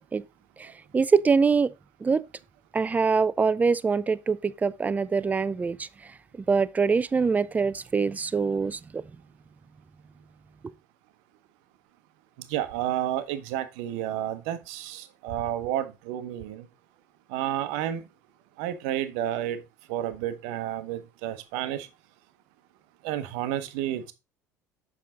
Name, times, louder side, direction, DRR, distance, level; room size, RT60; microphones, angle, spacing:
voice 1, 0.9-1.7 2.0-2.2 2.7-5.9 6.5-9.0, right 5 dB, 20° right, 0.4 m, -24 dB
voice 2, 12.5-16.7 17.3-18.0 18.6-19.6 19.9-21.9 23.0-24.1, right 12 dB, 60° right, 0.9 m, -31 dB
7.4 x 5.5 x 3.7 m
figure-of-eight pair, 60°, 9 cm